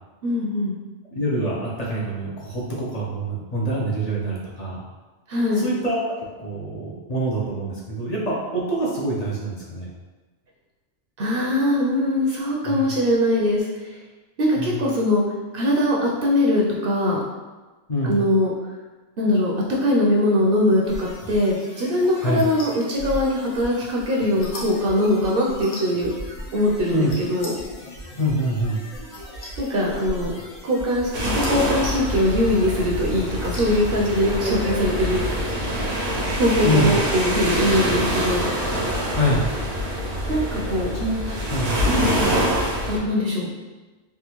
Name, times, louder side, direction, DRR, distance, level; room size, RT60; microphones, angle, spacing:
voice 1, 0.2-0.8 5.3-5.7 11.2-14.0 14.4-15.2 15.5-17.2 18.0-18.5 19.2-26.1 26.5-27.6 29.6-30.3 30.6-35.2 36.3-38.5 40.3-40.9 41.9-42.1 42.9-43.5, left 1 dB, 65° right, -3 dB, 0.7 m, -21 dB
voice 2, 1.1-4.8 5.6-9.9 12.6-12.8 14.6-14.7 17.9-18.2 22.2-22.4 26.9-27.1 28.2-28.8 34.6-34.8 36.6-36.9 39.1-39.4 40.9-41.2 41.5-41.7, equal, 45° left, -5 dB, 0.7 m, -25 dB
sound 1, 20.8-35.5, equal, 85° left, 1.1 m, -38 dB
sound 2, 31.1-43.0, equal, 85° right, 1.0 m, -25 dB
3.5 x 2.2 x 2.9 m, 1.2 s
omnidirectional pair, 1.1 m